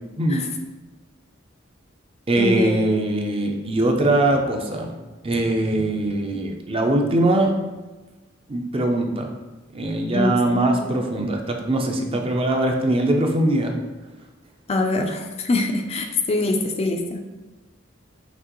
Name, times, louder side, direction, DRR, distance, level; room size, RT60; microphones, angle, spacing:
voice 1, 0.2-0.5 2.3-4.9 5.2-7.5 8.5-9.3 9.7-13.8, right 1 dB, 30° right, 3 dB, 0.5 m, -21 dB
voice 2, 2.4-2.8 10.1-11.0 14.7-17.2, left 2 dB, 30° left, 4 dB, 0.4 m, -24 dB
6.0 x 2.9 x 3.0 m, 1.2 s
head